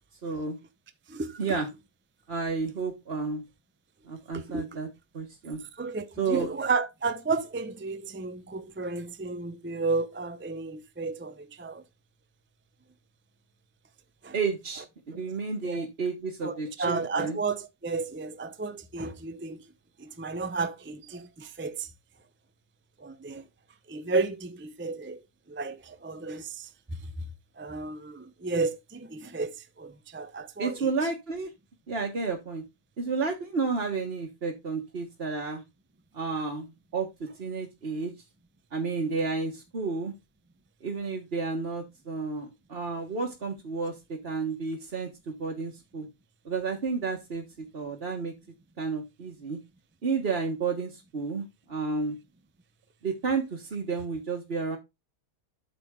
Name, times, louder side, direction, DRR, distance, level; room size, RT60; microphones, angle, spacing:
voice 1, 0.2-0.6 1.4-1.7 2.3-3.4 4.0-4.9 5.1-5.6 6.2-6.5 14.3-17.4 30.6-31.5 31.9-32.6 33.0-35.6 36.1-37.1 37.4-38.1 38.7-40.1 40.8-46.1 46.4-47.4 47.7-48.3 48.8-49.6 50.0-52.2 53.0-54.8, right 4 dB, 40° right, 1.5 m, -31 dB
voice 2, 1.1-1.4 4.3-4.6 5.8-11.8 14.2-14.3 15.6-15.9 16.4-19.6 20.0-21.9 23.0-23.4 23.9-25.2 25.5-26.7 27.6-30.9, right 4 dB, 15° right, 0.3 m, -32 dB
8.8 x 6.0 x 3.7 m
omnidirectional pair, 1.7 m